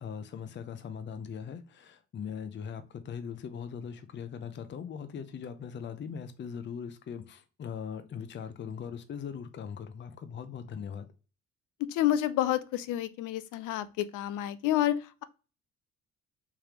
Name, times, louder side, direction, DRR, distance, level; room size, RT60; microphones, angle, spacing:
voice 1, 0.0-11.1, left 7 dB, 40° left, 0.5 m, -40 dB
voice 2, 11.9-14.9, left 13 dB, 90° left, 0.5 m, -29 dB
3.5 x 3.3 x 2.9 m
cardioid pair, 90°, 30 cm